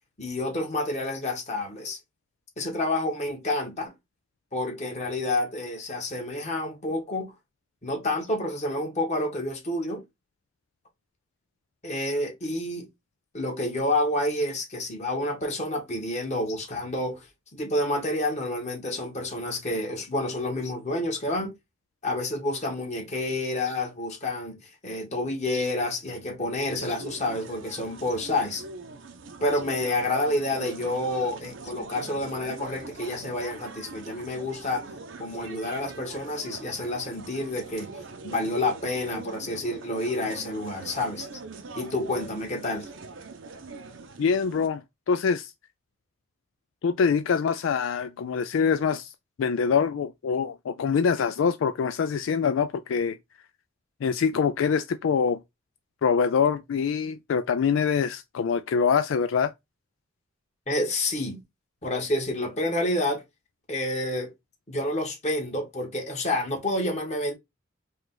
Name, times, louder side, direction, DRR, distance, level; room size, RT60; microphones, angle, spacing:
voice 1, 0.2-2.0 2.6-3.9 4.5-7.3 7.8-10.0 11.8-12.9 13.3-17.3 17.5-21.5 22.0-28.6 29.4-34.8 35.2-37.9 38.2-41.3 41.7-42.9 60.7-61.4 61.8-63.2 63.7-64.3 64.7-67.3, left 1 dB, 35° left, 1.6 m, -29 dB
sound 1, 26.8-44.7, right 4 dB, 75° right, 0.8 m, -42 dB
voice 2, 44.2-45.5 46.8-49.1 49.4-53.2 54.0-55.4 56.0-59.5, left 6 dB, 80° left, 0.4 m, -24 dB
5.0 x 2.4 x 3.9 m
head